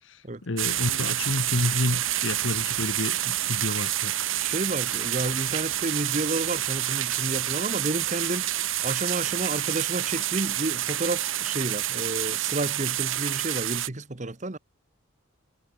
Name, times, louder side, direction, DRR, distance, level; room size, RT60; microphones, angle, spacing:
voice 1, 0.4-4.1, left 2 dB, 65° left, 1.2 m, -29 dB
sound 1, 0.6-13.9, right 13 dB, 75° right, 2.0 m, -28 dB
voice 2, 4.4-8.5 8.8-14.6, right 2 dB, 35° right, 1.1 m, -31 dB
head